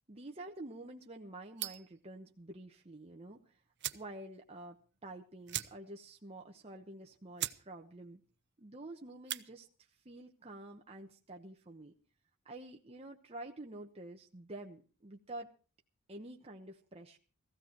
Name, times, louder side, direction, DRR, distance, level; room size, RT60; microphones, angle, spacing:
voice 1, 0.1-3.6 3.9-8.2 8.6-9.7 10.0-11.9 12.4-15.5 16.1-17.2, right 1 dB, 25° right, 1 dB, 1.0 m, -49 dB
sound 1, 1.6-2.0 3.3-3.4 3.8-4.1 4.5-4.6 4.8-5.0 5.5-6.1 6.4-6.5 7.0-7.1 7.4-7.6 8.0-8.3 9.1-9.5, right 13 dB, 50° right, 0.8 m, -40 dB
16.0 x 15.5 x 4.5 m, 0.37 s
head